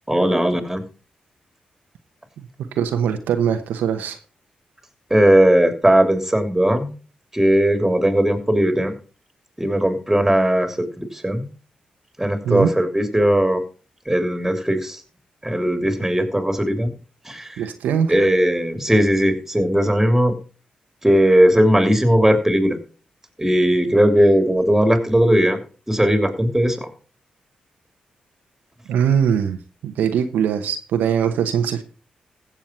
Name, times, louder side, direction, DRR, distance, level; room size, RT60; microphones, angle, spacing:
voice 1, 0.1-0.8 5.1-6.9 7.3-8.9 9.6-11.4 12.2-13.6 14.1-15.0 15.4-16.9 17.3-17.6 18.1-20.3 21.0-22.8 23.4-25.6 25.9-26.8, equal, 10° right, 7 dB, 3.0 m, -18 dB
voice 2, 2.7-4.2 12.4-12.7 17.6-18.1 28.9-31.8, right 8 dB, 85° right, 7 dB, 1.0 m, -21 dB
15.5 x 7.2 x 4.4 m, 0.36 s
supercardioid pair, 50°, 3 cm